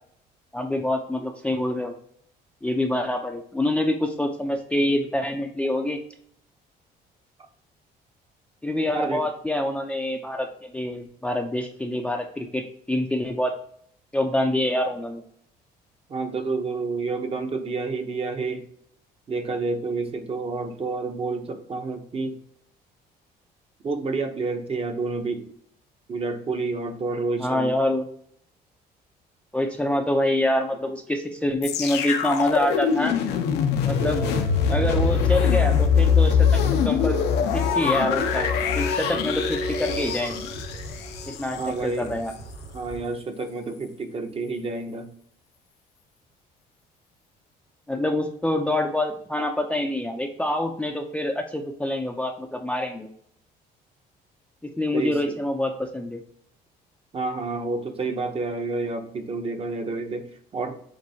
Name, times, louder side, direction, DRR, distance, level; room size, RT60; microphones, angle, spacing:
voice 1, 0.5-1.9 2.6-6.0 8.6-13.5 14.1-15.2 27.4-28.0 29.5-33.2 33.9-34.2 34.7-37.2 37.5-38.5 38.7-40.4 41.3-42.3 47.9-53.1 54.8-56.2, left 1 dB, 5° left, 3 dB, 0.5 m, -26 dB
voice 2, 16.1-18.7 19.3-22.4 23.8-25.5 26.1-27.8 41.6-42.1 42.7-45.1 54.9-55.4 57.1-60.8, right 3 dB, 35° right, 5 dB, 0.8 m, -29 dB
sound 1, 31.6-41.7 42.3-42.4, left 7 dB, 85° left, 0.7 m, -23 dB
sound 2, 33.9-43.0, right 1 dB, 75° right, 2.0 m, -35 dB
7.5 x 2.6 x 2.7 m, 0.65 s
cardioid pair, 110°, 17 cm